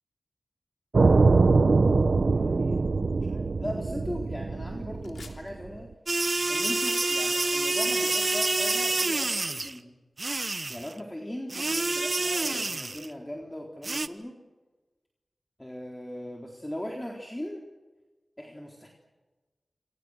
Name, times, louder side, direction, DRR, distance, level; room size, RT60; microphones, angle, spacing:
sound 1, 0.9-5.8, right 3 dB, 70° right, 0.9 m, -23 dB
voice 1, 2.2-10.0 10.7-14.4 15.6-17.6 18.4-18.9, left 1 dB, 15° left, 0 dB, 4.1 m, -39 dB
sound 2, 5.0-5.5 7.8-8.4 10.6-10.7, left 4 dB, 85° left, 3.2 m, -46 dB
sound 3, 6.1-9.7 10.2-10.9 11.5-13.1 13.8-14.1, right 3 dB, 50° right, 1.2 m, -27 dB
28.5 x 26.5 x 6.6 m, 1.2 s
wide cardioid pair, 55°, 0 cm